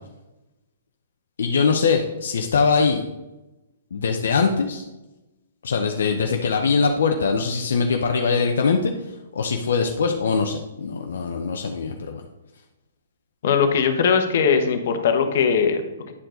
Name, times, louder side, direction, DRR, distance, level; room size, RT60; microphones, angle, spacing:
voice 1, 1.4-3.0 3.9-4.8 5.6-12.2, left 5 dB, 75° left, 3 dB, 0.7 m, -22 dB
voice 2, 13.4-16.1, left 6 dB, 60° left, 6 dB, 1.1 m, -20 dB
9.7 x 4.7 x 3.8 m, 1.0 s
hypercardioid pair, 140°, 0 cm